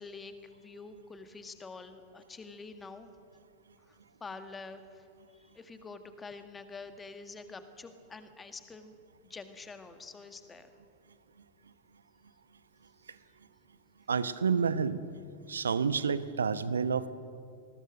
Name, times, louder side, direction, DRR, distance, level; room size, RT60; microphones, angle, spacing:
voice 1, 0.0-3.1 3.9-5.1 5.3-8.9 9.2-10.7, left 4 dB, 15° left, 8 dB, 1.9 m, -47 dB
voice 2, 14.1-15.0 15.5-17.1, right 6 dB, 70° right, 14 dB, 1.0 m, -29 dB
28.0 x 20.5 x 6.5 m, 2.4 s
figure-of-eight pair, 90°, 0 cm